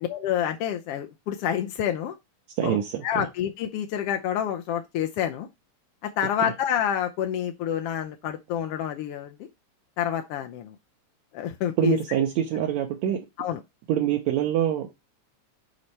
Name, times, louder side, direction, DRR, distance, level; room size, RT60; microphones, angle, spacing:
voice 1, 0.1-2.1 2.6-5.5 6.0-9.5 10.0-10.7 11.3-12.0 13.4-13.6, left 10 dB, 80° left, 1.3 m, -28 dB
voice 2, 2.6-3.3 11.8-13.2 13.9-14.9, right 10 dB, 75° right, 2.1 m, -25 dB
10.0 x 4.2 x 3.3 m
omnidirectional pair, 3.4 m